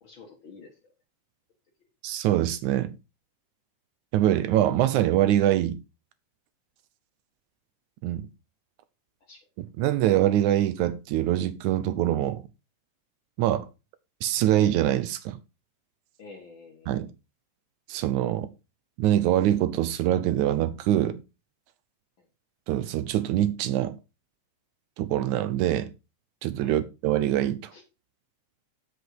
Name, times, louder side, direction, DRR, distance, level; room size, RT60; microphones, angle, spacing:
voice 1, 0.0-0.9 9.3-9.4 13.4-13.5 16.2-16.9 26.6-26.8 27.7-27.8, left 4 dB, 50° left, 1.7 m, -49 dB
voice 2, 2.0-2.9 4.1-5.8 8.0-8.2 9.8-12.4 13.4-13.7 14.2-15.4 16.9-17.1 17.9-18.5 19.0-21.2 22.7-24.0 25.0-25.9 26.4-27.7, right 12 dB, 80° right, 2.0 m, -24 dB
7.7 x 6.2 x 4.7 m
omnidirectional pair, 3.6 m